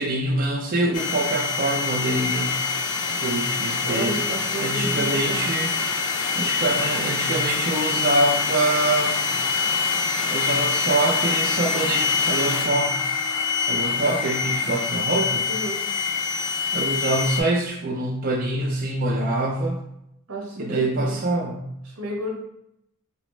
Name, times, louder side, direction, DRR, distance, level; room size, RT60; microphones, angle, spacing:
voice 1, 0.0-4.3 4.6-5.7 6.3-9.3 10.3-12.9 13.6-15.5 16.7-19.8 20.6-21.7, right 2 dB, 40° right, -1 dB, 0.4 m, -25 dB
sound 1, 0.9-17.4, left 5 dB, 80° left, 0.5 m, -25 dB
voice 2, 3.8-5.4 15.5-15.8 20.3-21.1 21.9-22.4, right 1 dB, 85° right, -1 dB, 1.0 m, -31 dB
4.0 x 2.0 x 3.0 m, 0.79 s
head